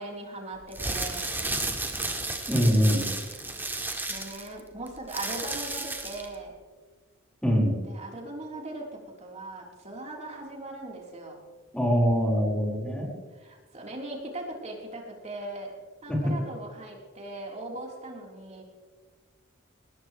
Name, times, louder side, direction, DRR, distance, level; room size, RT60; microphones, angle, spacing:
voice 1, 0.0-1.4 3.5-3.7 4.1-6.5 7.9-8.8 9.2-11.4 13.4-15.7 16.0-18.6, right 2 dB, 35° right, -1 dB, 3.9 m, -39 dB
sound 1, 0.6-6.3, right 2 dB, 10° right, 1.9 m, -33 dB
voice 2, 2.5-3.1 7.4-7.8 11.7-13.1 16.1-16.2, equal, 5° left, -2 dB, 4.7 m, -23 dB
20.0 x 20.0 x 3.3 m, 1.4 s
head